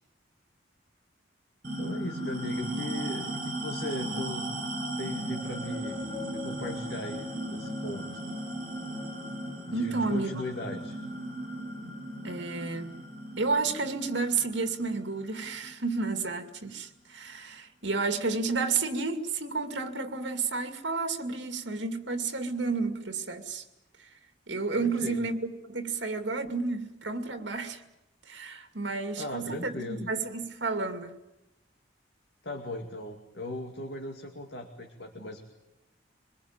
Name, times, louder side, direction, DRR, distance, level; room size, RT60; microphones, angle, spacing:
sound 1, 1.6-16.5, right 1 dB, 45° right, 7.2 m, -36 dB
voice 1, 1.8-4.5 5.0-6.0 6.3-8.0 9.7-11.0 24.8-25.2 28.9-30.1 32.4-35.4, left 1 dB, 70° left, 2.5 m, -38 dB
voice 2, 9.7-10.3 12.2-12.9 13.4-23.6 24.5-27.8 28.3-31.2, right 4 dB, 75° right, 2.5 m, -31 dB
25.5 x 21.5 x 8.9 m
head